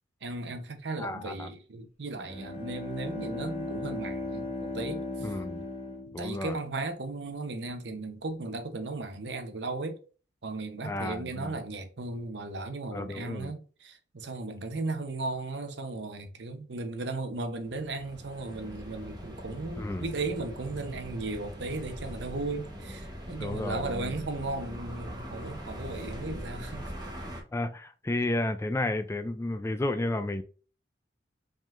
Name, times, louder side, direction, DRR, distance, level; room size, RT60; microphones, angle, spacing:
voice 1, 0.2-5.3 6.2-10.0 10.4-26.8, right 3 dB, 65° right, 0.8 m, -36 dB
voice 2, 1.0-1.5 5.2-5.6 6.1-6.6 10.8-11.6 12.9-13.5 19.8-20.1 23.4-24.2 27.5-30.4, left 2 dB, 15° left, 0.3 m, -32 dB
Bowed string instrument, 2.1-6.9, left 2 dB, 35° left, 1.1 m, -37 dB
sound 1, 17.6-27.4, equal, 20° right, 1.0 m, -41 dB
5.1 x 3.6 x 2.5 m
head